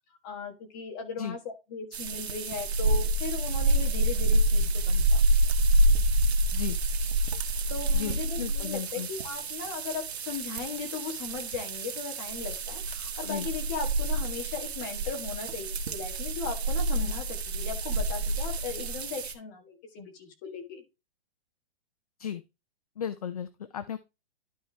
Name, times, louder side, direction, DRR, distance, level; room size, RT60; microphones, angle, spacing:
voice 1, 0.2-5.2 7.7-20.8, left 5 dB, 20° left, 3 dB, 1.5 m, -38 dB
sound 1, 1.9-19.3, right 1 dB, 80° right, 1.8 m, -27 dB
voice 2, 7.9-9.1 13.3-13.5 22.2-22.4 23.0-24.0, left 8 dB, 35° left, 13 dB, 0.5 m, -35 dB
12.0 x 4.4 x 3.4 m, 0.26 s
hypercardioid pair, 180°, 31 cm